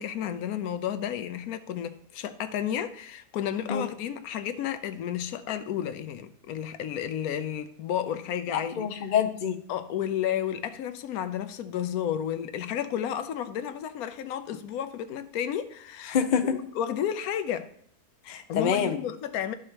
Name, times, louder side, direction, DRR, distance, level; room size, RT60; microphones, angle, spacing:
voice 1, 0.0-8.9 9.7-16.2 16.8-17.7 18.5-19.5, left 9 dB, 75° left, 1.0 m, -32 dB
voice 2, 8.5-9.6 16.1-16.5 18.2-19.0, left 7 dB, 55° left, 0.5 m, -26 dB
12.5 x 4.9 x 2.9 m
omnidirectional pair, 1.6 m